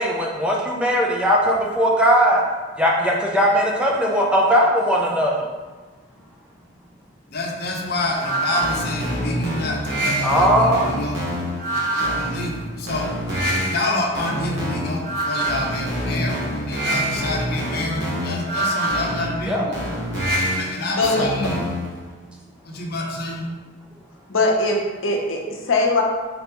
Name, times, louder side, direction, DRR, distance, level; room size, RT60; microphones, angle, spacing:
voice 1, 0.0-2.4 2.8-5.5 10.2-10.9 19.5-19.6, equal, 5° right, -3 dB, 0.4 m, -19 dB
voice 2, 7.3-11.2 11.7-19.9 20.5-21.6 22.6-23.5, left 2 dB, 55° left, -1 dB, 0.7 m, -28 dB
sound 1, 8.1-21.9, right 1 dB, 65° right, 1.1 m, -25 dB
voice 3, 21.0-21.3 24.3-26.0, left 2 dB, 90° left, 0 dB, 0.7 m, -21 dB
3.9 x 3.4 x 2.9 m, 1.3 s
head